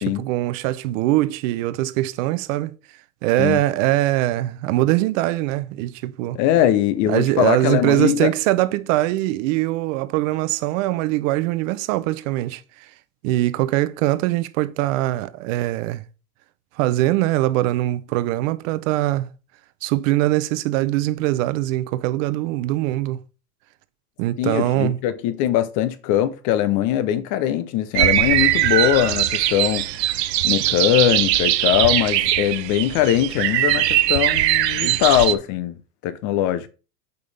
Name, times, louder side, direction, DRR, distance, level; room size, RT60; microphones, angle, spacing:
voice 1, 0.1-2.8 3.2-6.4 7.1-12.9 13.2-16.0 16.8-19.3 19.8-23.2 24.2-25.0 34.8-35.0, right 16 dB, 50° right, 0.7 m, -22 dB
voice 2, 6.3-8.3 24.4-29.9 30.4-35.8 36.0-36.7, left 12 dB, 40° left, 0.7 m, -21 dB
sound 1, 27.9-35.3, right 14 dB, 85° right, 0.8 m, -20 dB
8.3 x 5.4 x 3.3 m
supercardioid pair, 130°, 49 cm